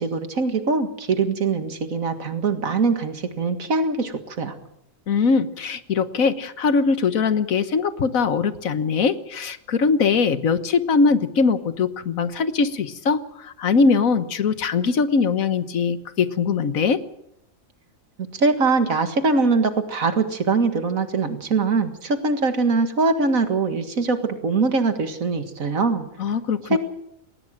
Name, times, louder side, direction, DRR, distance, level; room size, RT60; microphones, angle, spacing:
voice 1, 0.0-4.5 18.3-26.1 26.7-26.8, right 4 dB, 85° right, 8 dB, 2.3 m, -22 dB
voice 2, 5.1-17.0 26.2-26.8, left 5 dB, 80° left, 12 dB, 1.6 m, -21 dB
19.0 x 19.0 x 7.6 m, 0.76 s
omnidirectional pair, 1.4 m